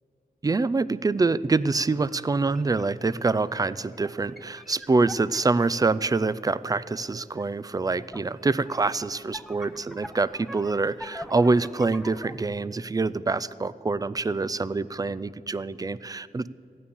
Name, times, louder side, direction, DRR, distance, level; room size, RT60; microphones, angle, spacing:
voice 1, 0.4-16.5, right 3 dB, 20° right, 17 dB, 0.3 m, -25 dB
sound 1, 2.0-6.3 7.4-7.5 7.7-12.4, equal, ahead, 0.7 m, -44 dB
14.0 x 9.5 x 7.0 m, 2.6 s
wide cardioid pair, 80°, 17 cm